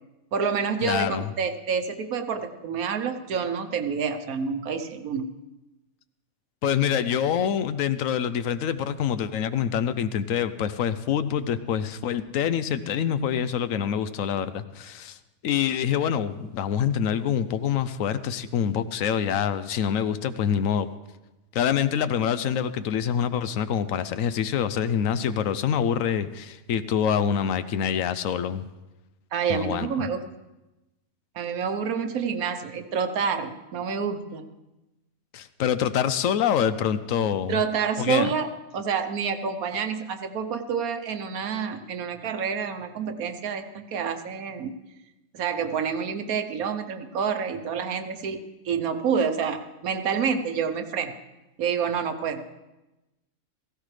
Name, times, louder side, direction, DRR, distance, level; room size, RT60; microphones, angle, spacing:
voice 1, 0.3-5.3 29.3-30.2 31.3-34.4 37.5-38.5 38.7-44.7 45.3-51.1 51.6-52.4, right 6 dB, 90° right, 8 dB, 1.4 m, -28 dB
voice 2, 0.8-1.2 6.6-15.2 15.4-20.9 21.5-28.6 29.5-30.1 35.3-37.6 38.0-38.3, left 8 dB, 75° left, 13 dB, 1.0 m, -26 dB
16.5 x 15.0 x 3.3 m, 1.0 s
omnidirectional pair, 1.5 m